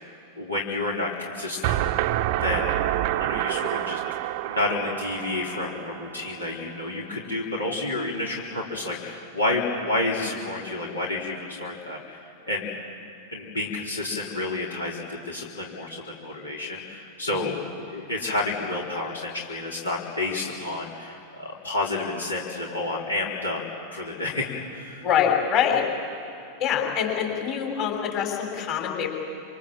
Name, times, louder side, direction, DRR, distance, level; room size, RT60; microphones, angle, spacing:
voice 1, 0.4-1.8 2.3-2.8 3.2-4.0 4.5-12.7 13.3-17.6 17.9-23.6 23.9-25.1, left 2 dB, 80° left, -4 dB, 4.1 m, -30 dB
sound 1, 1.6-6.6, right 14 dB, 45° right, 0.7 m, -28 dB
voice 2, 25.0-25.9 26.6-29.1, left 8 dB, 40° left, 1 dB, 6.4 m, -25 dB
28.0 x 27.0 x 7.7 m, 2.9 s
figure-of-eight pair, 90°, 0 cm